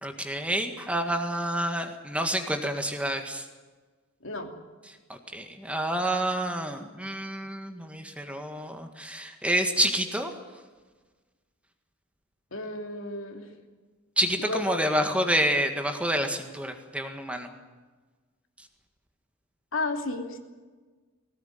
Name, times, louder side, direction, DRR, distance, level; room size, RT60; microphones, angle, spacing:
voice 1, 0.0-3.4 5.1-10.3 14.2-17.5, right 1 dB, 5° right, 5 dB, 1.8 m, -28 dB
voice 2, 4.2-4.5 12.5-13.5 14.4-14.8 19.7-20.4, left 2 dB, 65° left, 4 dB, 2.9 m, -32 dB
20.5 x 18.0 x 9.3 m, 1.3 s
head